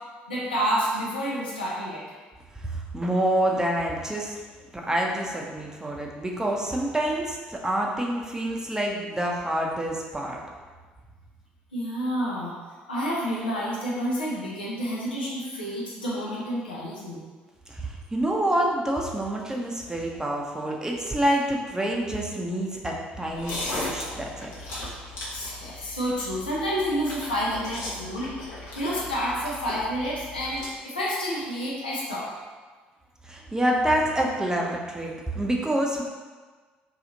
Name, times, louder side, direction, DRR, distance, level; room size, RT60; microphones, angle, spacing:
voice 1, 0.3-2.0 11.7-12.5 12.9-17.3 25.3-28.3 28.7-32.3, equal, 85° left, -5 dB, 0.6 m, -29 dB
voice 2, 2.6-4.3 4.7-10.4 17.7-24.5 33.3-36.0, right 1 dB, 10° right, -1 dB, 0.6 m, -27 dB
sound 1, 23.3-30.7, left 2 dB, 65° left, 0.9 m, -37 dB
2.8 x 2.4 x 3.9 m, 1.4 s
figure-of-eight pair, 50°, 5 cm